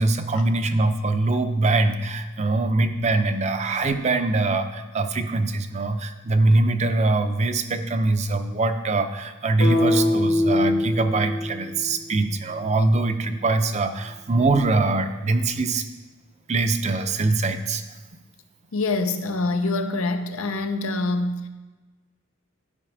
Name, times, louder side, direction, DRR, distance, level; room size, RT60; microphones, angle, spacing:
voice 1, 0.0-15.8 16.5-17.8, right 2 dB, 30° right, 0.5 m, -23 dB
sound 1, 9.6-13.7, left 1 dB, 65° left, 1.7 m, -25 dB
voice 2, 18.7-21.5, left 2 dB, 85° left, 0.7 m, -25 dB
12.5 x 5.1 x 4.9 m
head